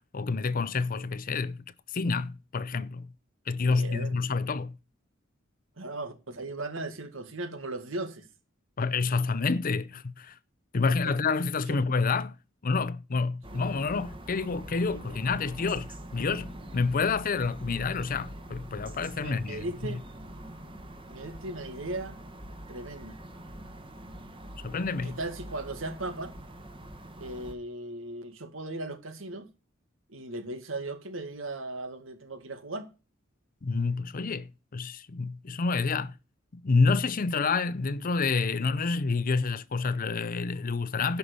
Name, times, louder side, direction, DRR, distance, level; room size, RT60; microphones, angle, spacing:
voice 1, 0.1-1.6 1.9-3.1 3.5-4.8 8.8-10.4 10.7-12.4 12.6-20.0 24.6-25.2 33.6-36.1 36.5-41.2, left 4 dB, 45° left, 0.6 m, -28 dB
voice 2, 3.6-4.2 5.8-8.3 11.0-11.1 13.5-13.7 14.8-15.1 19.2-20.0 21.1-22.2 22.7-23.2 25.0-26.3 27.2-29.5 30.1-32.9, right 2 dB, 85° right, 2.0 m, -37 dB
sound 1, 13.4-27.5, right 1 dB, 25° right, 1.5 m, -44 dB
11.0 x 5.8 x 6.8 m
head